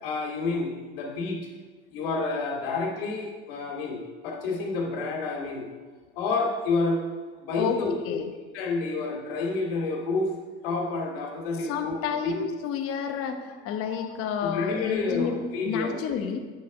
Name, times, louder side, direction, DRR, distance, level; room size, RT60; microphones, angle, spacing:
voice 1, 0.0-1.4 1.9-5.7 6.2-7.0 7.4-8.2 8.5-10.3 10.6-12.5 14.4-16.3, left 3 dB, 75° left, 0 dB, 2.3 m, -29 dB
voice 2, 11.7-15.4 15.6-16.4, left 8 dB, 50° left, 5 dB, 1.0 m, -30 dB
8.7 x 6.4 x 5.5 m, 1.4 s
hypercardioid pair, 90°, 29 cm